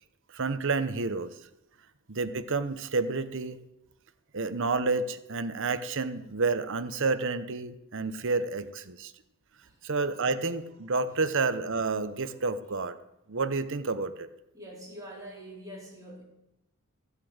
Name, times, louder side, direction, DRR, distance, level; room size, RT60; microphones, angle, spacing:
voice 1, 0.3-1.3 2.1-3.6 4.3-9.1 9.8-13.0 13.3-14.3, right 3 dB, 60° right, 12 dB, 0.9 m, -30 dB
voice 2, 14.5-16.2, equal, 15° right, -3 dB, 4.1 m, -44 dB
14.5 x 8.3 x 7.9 m, 0.88 s
head